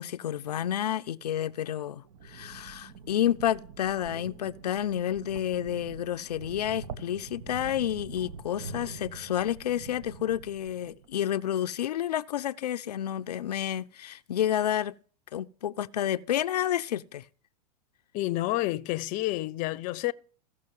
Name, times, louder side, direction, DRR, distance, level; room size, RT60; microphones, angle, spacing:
voice 1, 0.0-14.9 15.3-17.3, left 11 dB, 85° left, 0.5 m, -30 dB
sound 1, 2.0-11.2, right 5 dB, 60° right, 1.3 m, -45 dB
voice 2, 18.1-20.1, left 18 dB, 40° left, 0.6 m, -29 dB
15.5 x 6.2 x 7.4 m
hypercardioid pair, 110°, 20 cm